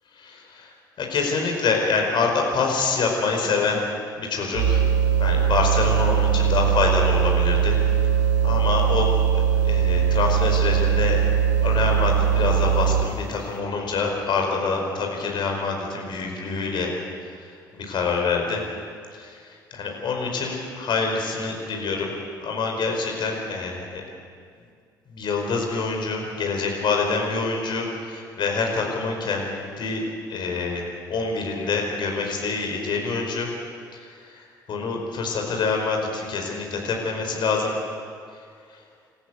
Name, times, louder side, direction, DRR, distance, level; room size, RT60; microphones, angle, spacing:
voice 1, 0.2-0.7 1.0-3.8 4.2-4.8 5.2-7.8 8.4-9.1 9.3-11.2 11.6-16.9 17.7-18.6 19.2-19.3 19.7-22.1 22.4-24.0 25.1-30.0 30.3-33.5 34.7-37.7, left 4 dB, 45° left, 1 dB, 5.1 m, -26 dB
sound 1, 4.5-13.2, right 8 dB, 75° right, 2.8 m, -20 dB
28.5 x 14.5 x 8.1 m, 2.2 s
figure-of-eight pair, 50°, 11 cm